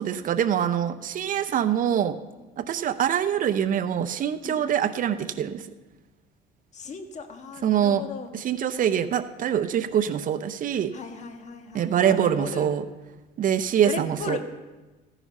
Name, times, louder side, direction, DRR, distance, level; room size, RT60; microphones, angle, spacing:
voice 1, 0.0-2.2 2.6-5.7 7.6-8.0 8.3-10.9 11.7-12.8 13.4-14.4, right 9 dB, 50° right, 11 dB, 0.7 m, -24 dB
voice 2, 6.7-8.3 10.9-12.7 13.8-14.4, left 4 dB, 45° left, 6 dB, 1.6 m, -37 dB
15.0 x 10.0 x 5.5 m, 1.2 s
cardioid pair, 110°, 17 cm